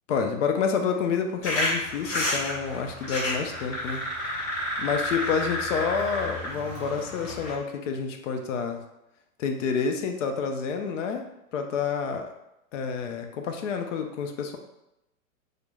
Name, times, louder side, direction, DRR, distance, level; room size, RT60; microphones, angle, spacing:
voice 1, 0.1-4.0 4.8-8.8 9.4-12.3 12.7-14.6, left 6 dB, 60° left, 4 dB, 0.5 m, -29 dB
sound 1, 1.4-7.5, left 1 dB, 25° left, 0.9 m, -30 dB
2.2 x 2.0 x 3.1 m, 0.88 s
hypercardioid pair, 140°, 43 cm